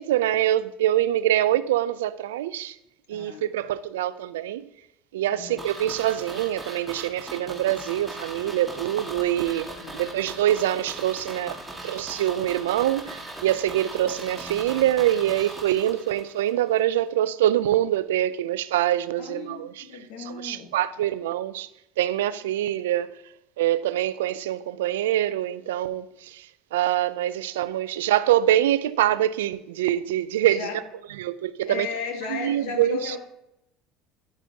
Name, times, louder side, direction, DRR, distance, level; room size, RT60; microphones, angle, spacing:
voice 1, 0.0-2.8 3.1-4.7 5.1-9.7 9.9-11.6 11.8-19.8 20.2-21.7 22.0-23.2 23.6-30.7 31.2-31.9 32.3-33.2, right 12 dB, 85° right, 0.3 m, -25 dB
voice 2, 3.1-3.7 5.3-5.6 9.8-10.1 19.2-20.7 30.4-30.8 31.6-33.2, left 6 dB, 75° left, 1.5 m, -35 dB
sound 1, 5.6-16.5 16.8-16.9, right 1 dB, 5° right, 1.8 m, -39 dB
9.8 x 9.7 x 2.8 m
hypercardioid pair, 90°, 0 cm